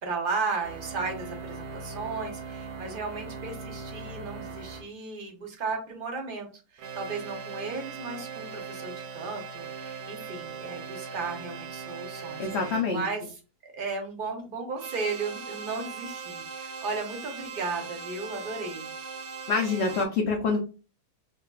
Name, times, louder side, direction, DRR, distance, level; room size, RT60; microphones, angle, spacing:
voice 1, 0.0-6.5 6.7-13.4 13.6-18.9, right 4 dB, 50° right, 2 dB, 0.7 m, -35 dB
sound 1, 0.6-4.9 6.8-12.9 14.8-20.1, right 5 dB, 80° right, 1.1 m, -40 dB
voice 2, 12.4-13.0 19.5-20.6, left 4 dB, 65° left, 1 dB, 0.7 m, -26 dB
3.9 x 2.2 x 2.3 m, 0.33 s
omnidirectional pair, 1.6 m